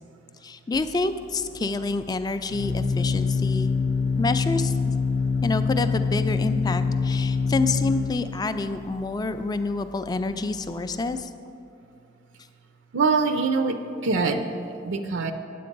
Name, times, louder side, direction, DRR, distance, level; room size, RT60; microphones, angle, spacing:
voice 1, 0.4-3.8 4.2-4.9 5.4-11.3, left 3 dB, 20° left, 10 dB, 0.3 m, -28 dB
Organ, 0.7-11.2, left 4 dB, 65° left, 0.6 m, -26 dB
voice 2, 12.9-15.3, right 4 dB, 70° right, 7 dB, 0.5 m, -24 dB
9.4 x 7.7 x 5.2 m, 2.6 s
head